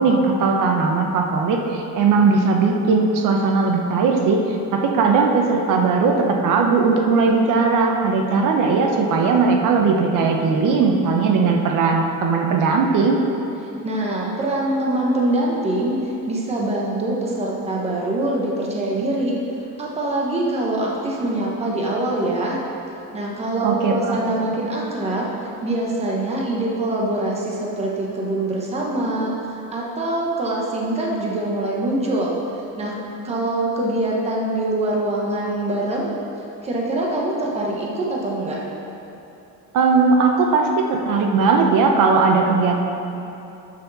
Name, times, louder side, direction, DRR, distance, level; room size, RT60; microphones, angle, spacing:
voice 1, 0.0-4.4 4.7-13.2 23.6-24.2 39.7-42.8, right 4 dB, 65° right, 2 dB, 1.1 m, -18 dB
voice 2, 13.8-19.3 19.8-22.6 23.1-25.2 25.6-32.4 32.8-32.9 33.2-36.1 36.6-38.6, right 1 dB, 20° right, -3 dB, 1.1 m, -24 dB
12.0 x 6.5 x 4.1 m, 2.8 s
cardioid pair, 180°, 34 cm